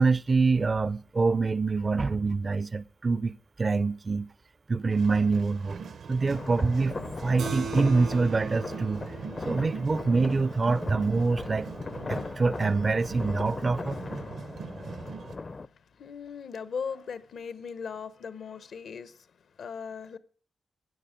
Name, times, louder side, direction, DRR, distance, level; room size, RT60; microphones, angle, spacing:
voice 1, 0.0-4.3 4.7-5.8 6.1-7.0 7.2-9.0 9.4-11.7 12.1-14.0, right 4 dB, 35° right, 0.5 m, -25 dB
sound 1, 4.9-15.4, right 6 dB, 70° right, 0.8 m, -41 dB
sound 2, 6.3-15.7, left 3 dB, 35° left, 0.5 m, -38 dB
Keyboard (musical), 7.4-12.3, right 5 dB, 90° right, 3.4 m, -41 dB
voice 2, 16.0-19.3 19.6-20.2, left 6 dB, 75° left, 1.0 m, -38 dB
12.5 x 9.9 x 5.1 m
wide cardioid pair, 105°, 0 cm